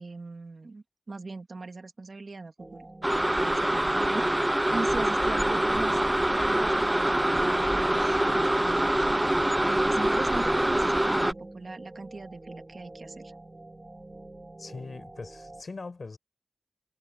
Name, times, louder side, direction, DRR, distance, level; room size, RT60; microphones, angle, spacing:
voice 1, 0.0-2.9 3.3-9.1 9.6-13.3, right 3 dB, 60° right, 2.1 m, -39 dB
sound 1, 2.6-15.6, right 2 dB, 30° right, 2.6 m, -46 dB
sound 2, 3.0-11.3, right 1 dB, 15° right, 0.3 m, -25 dB
voice 2, 14.6-16.2, left 3 dB, 65° left, 5.0 m, -41 dB
wide cardioid pair, 70°, 0 cm